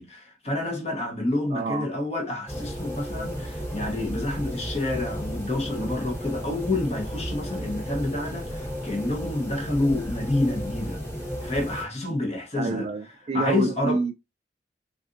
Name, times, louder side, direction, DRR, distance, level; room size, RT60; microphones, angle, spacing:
voice 1, 0.0-11.0 11.4-12.9 13.3-14.0, left 2 dB, 35° left, 0.8 m, -28 dB
voice 2, 1.5-1.9 12.6-14.1, right 3 dB, 35° right, 0.3 m, -28 dB
sound 1, 2.5-11.8, equal, 15° left, 1.0 m, -34 dB
3.6 x 2.4 x 2.5 m
head